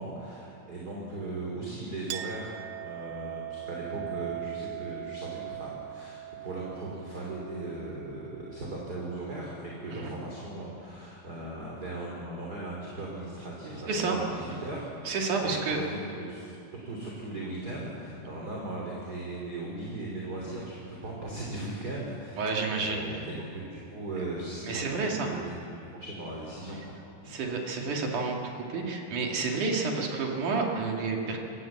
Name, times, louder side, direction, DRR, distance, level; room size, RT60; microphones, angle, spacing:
voice 1, 0.0-2.5 2.8-14.8 15.4-16.5 16.8-22.5 22.7-25.4 26.0-26.9 27.2-27.3, right 2 dB, 25° right, -3 dB, 3.4 m, -38 dB
Chink clink, 2.1-9.2, right 13 dB, 80° right, 2.5 m, -40 dB
voice 2, 13.9-14.2 15.1-15.8 22.4-23.0 24.6-25.3 27.3-31.4, right 4 dB, 55° right, 0 dB, 3.9 m, -30 dB
24.5 x 18.0 x 7.5 m, 2.6 s
omnidirectional pair, 4.4 m